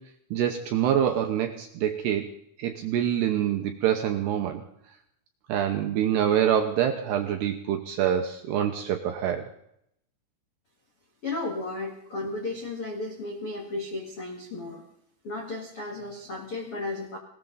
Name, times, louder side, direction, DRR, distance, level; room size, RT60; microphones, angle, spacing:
voice 1, 0.3-2.3 2.6-4.6 5.5-9.5, right 10 dB, 75° right, 5 dB, 2.5 m, -26 dB
voice 2, 11.2-14.8 15.2-17.2, left 2 dB, 70° left, 2 dB, 1.3 m, -34 dB
19.5 x 18.5 x 3.9 m, 0.73 s
omnidirectional pair, 5.9 m